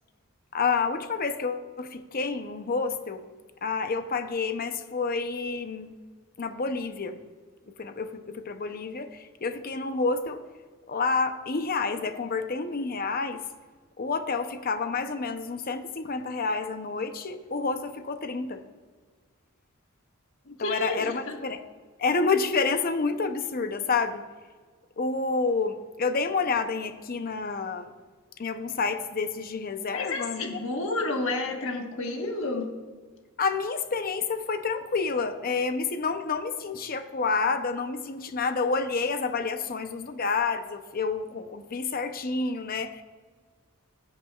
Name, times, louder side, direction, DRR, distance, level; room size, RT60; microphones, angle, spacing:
voice 1, 0.5-3.3 3.6-5.9 6.4-7.2 7.8-10.4 10.9-13.4 14.0-18.6 20.6-21.6 22.0-24.2 25.0-27.9 28.4-30.4 33.4-43.0, left 4 dB, 45° left, 8 dB, 0.7 m, -29 dB
voice 2, 20.4-21.4 29.9-32.7, left 2 dB, 65° left, 2 dB, 1.4 m, -31 dB
17.0 x 8.0 x 2.4 m, 1.5 s
head